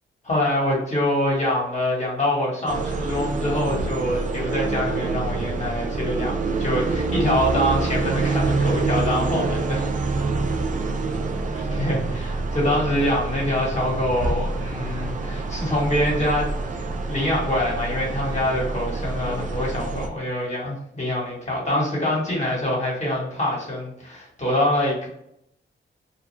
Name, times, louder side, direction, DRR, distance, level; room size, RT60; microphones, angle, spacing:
voice 1, 0.2-6.3 6.6-9.9 11.5-25.1, left 1 dB, 35° left, -4 dB, 1.2 m, -25 dB
sound 1, 2.7-20.1, right 3 dB, 40° right, 0.4 m, -26 dB
2.4 x 2.2 x 3.0 m, 0.75 s
cardioid pair, 75°, 20 cm